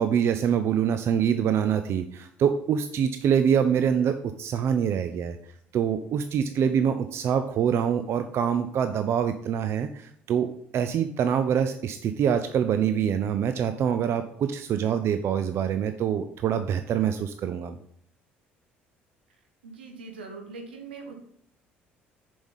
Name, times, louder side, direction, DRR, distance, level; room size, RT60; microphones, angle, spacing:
voice 1, 0.0-5.4 5.7-17.8, right 8 dB, 50° right, 9 dB, 0.6 m, -25 dB
voice 2, 19.6-21.1, right 4 dB, 85° right, 4 dB, 1.3 m, -41 dB
7.0 x 5.2 x 5.6 m, 0.67 s
hypercardioid pair, 55°, 5 cm